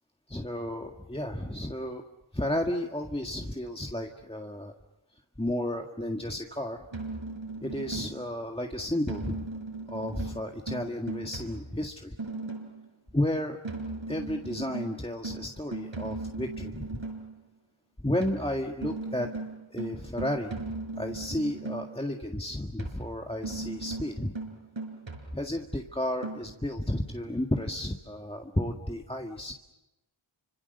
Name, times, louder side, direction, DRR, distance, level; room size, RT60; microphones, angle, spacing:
voice 1, 0.3-2.0 2.3-4.7 5.4-6.9 7.6-9.5 9.9-12.2 13.1-13.6 14.1-17.0 18.0-19.3 19.7-24.3 25.3-29.5, left 1 dB, 10° left, 2 dB, 1.8 m, -32 dB
sound 1, 6.9-8.3 9.1-12.9 13.6-17.3 18.2-22.0 22.8-25.7 26.2-26.4, right 3 dB, 70° right, 5.8 m, -38 dB
29.5 x 26.0 x 6.8 m, 0.97 s
wide cardioid pair, 40°, 48 cm